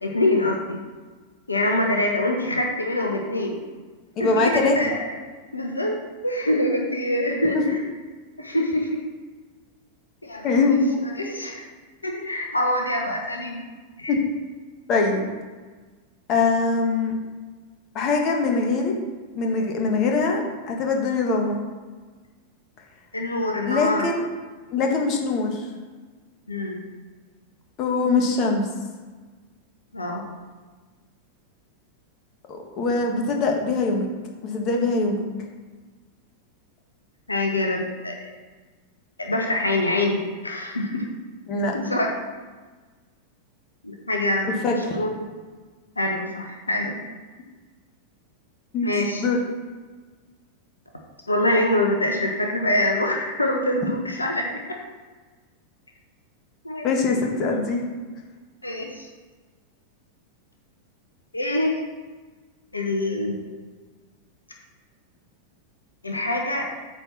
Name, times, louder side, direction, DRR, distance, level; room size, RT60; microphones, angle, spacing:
voice 1, 0.0-0.8 1.5-3.6 4.2-5.1 5.5-7.8 8.4-9.0 10.2-10.5 11.2-11.7 12.0-13.6 14.0-14.1 23.1-24.1 26.5-26.8 29.9-30.2 37.3-38.2 39.2-41.0 41.7-42.1 43.8-45.1 46.0-47.0 48.8-49.2 51.3-54.6 56.6-56.9 58.6-59.1 61.3-61.8 62.7-63.4 66.0-66.7, left 1 dB, 80° left, 1 dB, 1.0 m, -25 dB
voice 2, 4.2-4.7 7.5-7.6 8.6-8.7 10.4-11.0 14.1-14.2 14.9-15.3 16.3-17.2 17.9-18.9 19.3-21.6 23.6-24.2 24.7-25.7 27.8-28.7 32.5-34.1 34.4-35.2 41.5-41.7 44.6-45.0 48.7-48.9 49.2-49.4 56.8-57.8, left 3 dB, 35° left, 2 dB, 1.5 m, -22 dB
8.8 x 4.6 x 5.9 m, 1.4 s
figure-of-eight pair, 90°, 0 cm